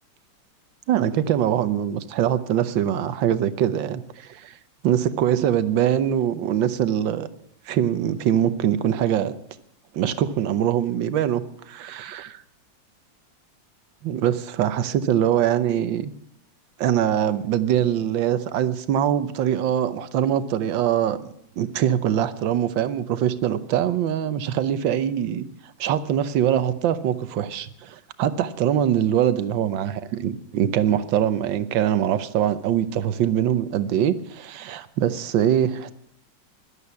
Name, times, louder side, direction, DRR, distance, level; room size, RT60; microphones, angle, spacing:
voice 1, 0.9-4.5 4.8-7.3 7.7-9.3 9.9-12.4 14.0-16.1 16.8-25.5 25.8-35.9, right 10 dB, 75° right, 13 dB, 1.6 m, -23 dB
12.5 x 11.5 x 8.3 m, 0.77 s
omnidirectional pair, 2.1 m